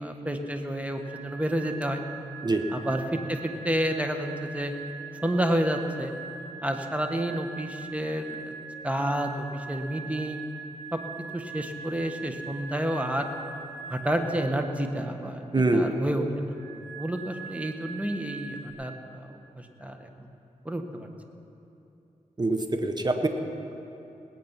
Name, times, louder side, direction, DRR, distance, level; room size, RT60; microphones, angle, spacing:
voice 1, 0.0-2.0 2.7-4.7 5.2-6.1 6.6-8.5 8.8-10.4 10.9-11.0 11.3-13.3 13.9-16.2 17.0-19.3 19.6-20.1 20.6-21.1, right 1 dB, 10° right, 4 dB, 1.5 m, -30 dB
sound 1, 0.9-14.6 16.5-18.7, right 5 dB, 75° right, 2.0 m, -42 dB
voice 2, 15.5-15.9 22.4-23.3, right 2 dB, 30° right, 6 dB, 1.3 m, -24 dB
19.5 x 8.8 x 5.9 m, 2.8 s
cardioid pair, 50°, 14 cm